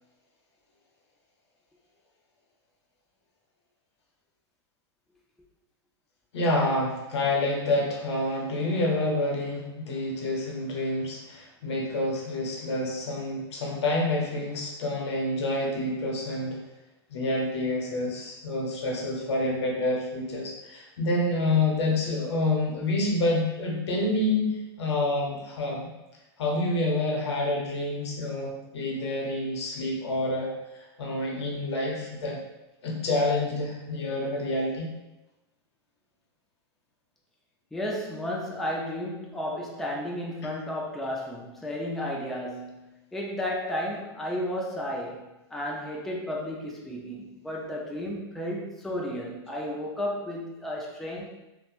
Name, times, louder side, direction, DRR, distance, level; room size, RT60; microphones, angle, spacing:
voice 1, 6.3-16.6 17.1-24.5 24.8-25.9 26.4-30.5 31.0-32.4 32.8-34.9, left 2 dB, 80° left, -1 dB, 0.8 m, -28 dB
voice 2, 37.7-45.3 45.5-51.3, left 1 dB, ahead, -3 dB, 0.3 m, -33 dB
2.9 x 2.1 x 2.4 m, 0.99 s
hypercardioid pair, 125°, 14 cm